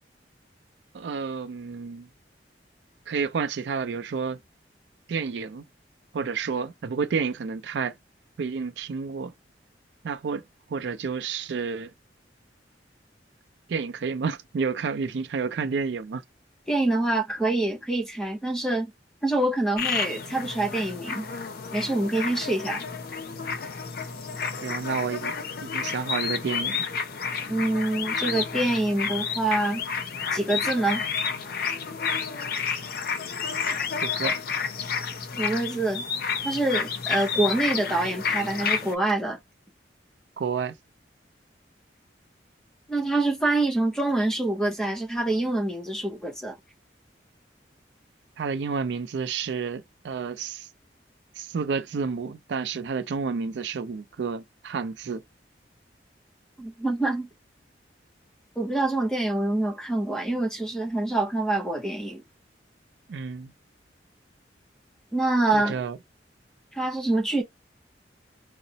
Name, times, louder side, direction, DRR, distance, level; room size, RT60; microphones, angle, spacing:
voice 1, 0.9-2.1 3.1-4.4 5.1-5.6 6.1-8.0 8.4-9.3 10.0-10.4 10.7-11.9 13.7-16.2 24.6-25.3 25.6-26.9 34.0-34.4 40.4-40.8 48.4-50.7 51.4-55.2 63.1-63.5 65.5-66.0, right 5 dB, 75° right, 0.4 m, -30 dB
voice 2, 16.7-18.9 19.2-21.3 21.7-22.8 27.5-29.8 30.3-31.0 35.4-36.0 36.4-39.4 42.9-46.5 56.6-57.3 58.6-62.2 65.1-65.8 66.7-67.4, right 2 dB, 5° left, 0.7 m, -26 dB
sound 1, 19.8-39.0, left 6 dB, 55° left, 0.5 m, -30 dB
3.9 x 2.0 x 2.7 m
head